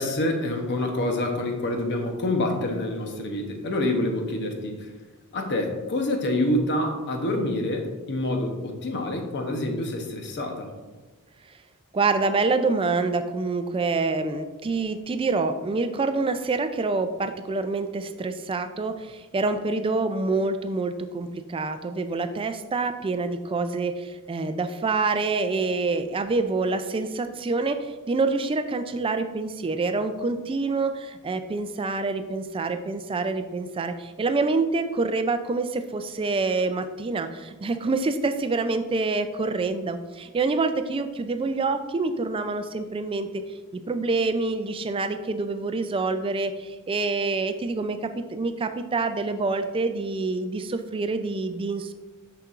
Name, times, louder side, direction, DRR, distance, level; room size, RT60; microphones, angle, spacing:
voice 1, 0.0-4.8 5.3-10.7, left 1 dB, 55° left, 3 dB, 0.8 m, -27 dB
voice 2, 11.9-43.4 43.7-51.9, right 3 dB, 25° right, 9 dB, 0.3 m, -26 dB
6.5 x 5.9 x 2.5 m, 1.2 s
head